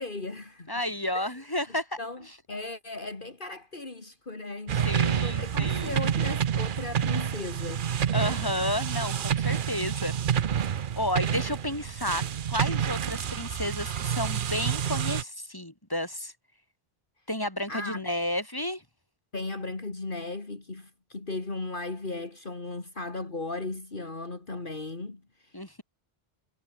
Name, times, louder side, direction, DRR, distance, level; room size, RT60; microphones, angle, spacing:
voice 1, 0.0-0.7 1.1-1.3 2.0-7.9 17.7-18.1 19.3-25.8, left 2 dB, 55° left, 2.8 m, -37 dB
voice 2, 0.7-2.0 4.7-5.9 8.1-10.1 11.0-12.2 12.5-16.3 17.3-18.8 25.5-25.8, left 1 dB, 20° left, 5.4 m, -31 dB
sound 1, 4.7-15.2, right 8 dB, 60° right, 0.9 m, -28 dB
omnidirectional pair, 1.0 m